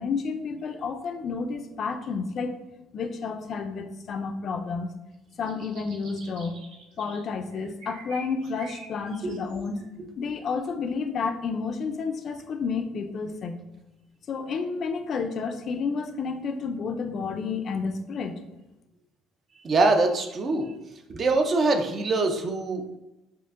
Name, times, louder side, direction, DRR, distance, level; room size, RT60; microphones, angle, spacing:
voice 1, 0.0-2.6 2.9-4.9 5.4-6.5 7.0-9.9 10.2-13.6 14.3-18.4, left 5 dB, 45° left, 6 dB, 0.3 m, -30 dB
sound 1, 5.1-7.2 7.5-9.9, right 2 dB, 70° right, 0.7 m, -47 dB
voice 2, 19.6-20.7 21.1-23.0, right 3 dB, 35° right, 6 dB, 0.4 m, -24 dB
4.4 x 2.5 x 2.4 m, 0.95 s
cardioid pair, 145°, 0 cm